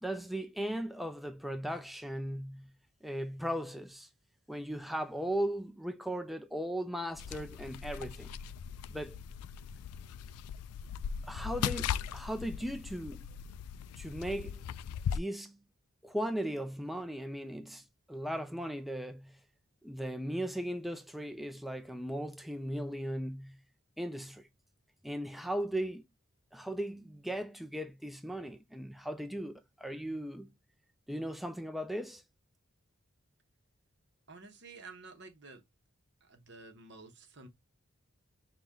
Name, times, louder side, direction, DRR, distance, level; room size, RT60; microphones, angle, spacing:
voice 1, 0.0-2.7 3.0-4.1 4.5-8.3 8.9-9.2 11.2-13.3 14.0-14.6 15.1-15.6 16.0-19.4 19.8-23.6 24.0-24.5 25.0-26.1 26.5-30.5 31.1-32.2, equal, ahead, 0.3 m, -37 dB
sound 1, 7.1-15.2, left 8 dB, 90° left, 0.3 m, -39 dB
voice 2, 34.3-35.6 36.2-37.5, right 3 dB, 50° right, 0.9 m, -51 dB
5.8 x 2.2 x 3.6 m
head